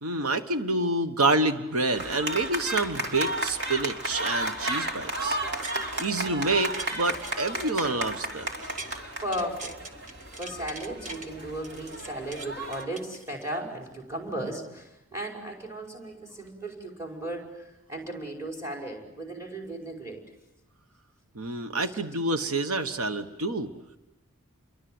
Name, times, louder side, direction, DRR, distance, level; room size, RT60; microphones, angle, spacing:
voice 1, 0.0-5.4 6.0-8.5 21.3-23.7, right 2 dB, 85° right, 8 dB, 1.3 m, -28 dB
sound 1, 1.9-12.8, right 1 dB, 55° right, 3.2 m, -33 dB
voice 2, 5.4-5.9 8.8-8.9 9.2-10.1 10.4-17.6 17.9-20.2, right 1 dB, 15° right, 1 dB, 5.6 m, -36 dB
sound 2, 5.4-6.2 6.6-9.0 9.3-11.3 11.6-13.6 14.1-14.2, right 2 dB, 35° right, 1.5 m, -43 dB
29.5 x 23.5 x 7.9 m, 0.95 s
head